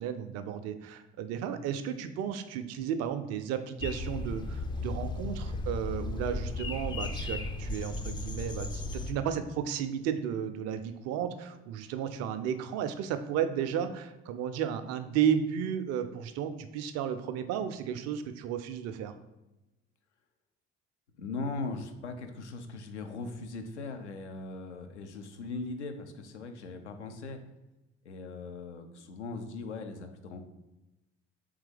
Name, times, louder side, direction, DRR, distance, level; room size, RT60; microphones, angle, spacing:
voice 1, 0.0-19.1, right 8 dB, 50° right, 10 dB, 0.4 m, -33 dB
sound 1, 3.8-9.1, left 2 dB, 15° left, 0.3 m, -35 dB
voice 2, 21.2-27.4 28.0-30.5, left 3 dB, 80° left, 6 dB, 0.5 m, -39 dB
3.5 x 3.2 x 3.3 m, 1.0 s
figure-of-eight pair, 50°, 34 cm